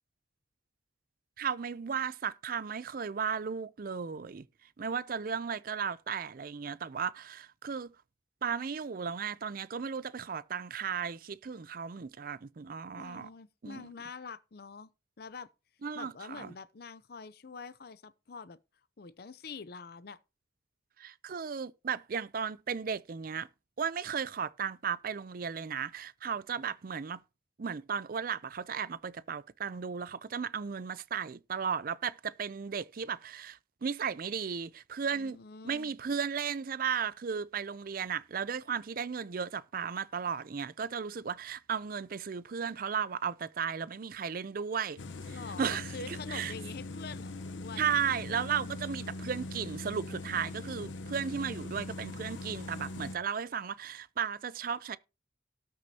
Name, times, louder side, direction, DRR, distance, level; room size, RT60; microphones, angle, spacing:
voice 1, 1.4-4.4 4.8-7.9 8.4-13.3 13.6-13.8 15.8-16.5 21.0-23.5 23.8-27.2 27.6-35.4 35.6-45.0 45.2-46.5 47.8-55.0, right 6 dB, 50° right, 0.4 m, -35 dB
voice 2, 13.0-14.9 15.2-15.5 15.9-18.6 19.0-20.2 35.1-36.0 45.3-47.9, left 4 dB, 55° left, 0.6 m, -45 dB
sound 1, 45.0-53.2, left 2 dB, 85° left, 0.9 m, -41 dB
18.0 x 6.3 x 2.8 m
head